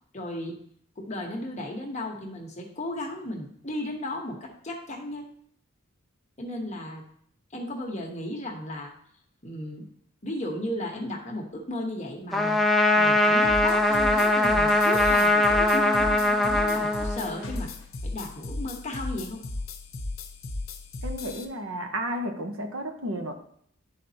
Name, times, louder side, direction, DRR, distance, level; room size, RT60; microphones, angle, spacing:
voice 1, 0.1-0.6 1.0-5.3 6.4-7.0 7.5-8.9 9.4-9.8 10.2-12.6 12.9-17.7 18.0-19.4, left 1 dB, 35° left, 1 dB, 1.1 m, -35 dB
Trumpet, 12.3-17.6, left 1 dB, ahead, 0.5 m, -22 dB
sound 1, 13.4-21.4, left 2 dB, 75° left, 0.9 m, -36 dB
voice 2, 21.0-23.3, equal, 75° right, 5 dB, 1.0 m, -32 dB
11.5 x 4.1 x 2.8 m, 0.65 s
head